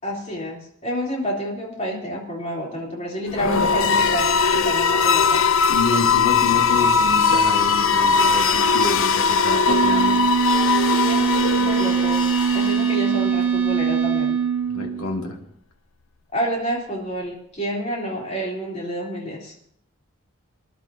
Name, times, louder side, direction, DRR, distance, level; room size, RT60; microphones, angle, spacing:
voice 1, 0.0-5.4 10.6-14.4 16.3-19.5, equal, 30° left, -3 dB, 3.4 m, -29 dB
sound 1, 3.3-13.2, left 5 dB, 65° left, 0.5 m, -20 dB
voice 2, 5.7-10.2 14.7-15.4, left 2 dB, 90° left, 1 dB, 1.9 m, -28 dB
sound 2, 9.7-15.2, right 7 dB, 70° right, 1.2 m, -22 dB
25.5 x 11.0 x 2.8 m, 0.69 s
head